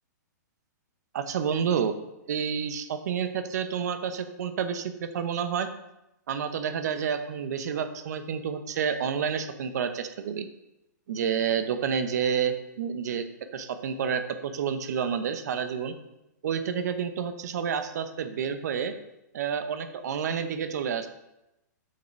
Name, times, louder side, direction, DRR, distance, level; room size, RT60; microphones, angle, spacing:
voice 1, 1.1-2.0 2.3-5.7 6.3-10.5 11.1-13.2 13.5-15.9 16.4-18.9 19.3-21.1, right 7 dB, 60° right, 10 dB, 0.9 m, -29 dB
6.8 x 6.5 x 5.8 m, 0.90 s
hypercardioid pair, 150°, 10 cm